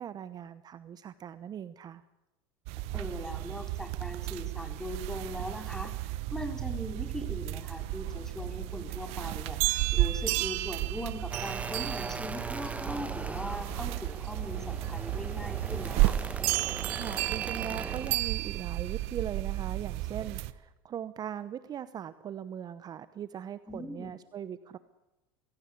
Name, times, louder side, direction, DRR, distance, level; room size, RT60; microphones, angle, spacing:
voice 1, 0.0-2.0 16.9-24.8, right 9 dB, 35° right, 15 dB, 0.9 m, -40 dB
sound 1, 2.7-20.5, right 18 dB, 65° right, 1.0 m, -33 dB
voice 2, 2.9-5.9 6.3-16.2 23.7-24.1, equal, 5° left, 6 dB, 3.9 m, -40 dB
sound 2, 8.1-18.4, left 9 dB, 50° left, 2.6 m, -52 dB
sound 3, 11.3-18.2, right 3 dB, 10° right, 1.6 m, -40 dB
22.0 x 16.5 x 8.5 m, 1.0 s
supercardioid pair, 100°, 12 cm